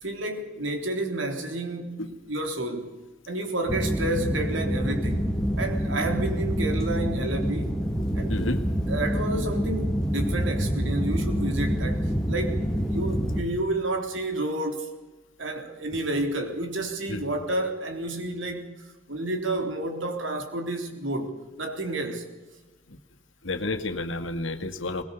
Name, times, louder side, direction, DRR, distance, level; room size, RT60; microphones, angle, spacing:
voice 1, 0.0-3.0 3.3-5.3 5.6-7.8 8.1-8.4 8.9-12.6 12.9-14.9 15.4-18.7 19.1-22.3, right 2 dB, 75° right, 3.5 m, -30 dB
sound 1, 3.7-13.4, equal, 5° left, 2.1 m, -27 dB
voice 2, 8.3-8.6 15.9-16.0 17.1-17.2 22.9-23.0 23.4-25.0, left 2 dB, 80° left, 2.0 m, -30 dB
21.5 x 21.0 x 7.0 m
head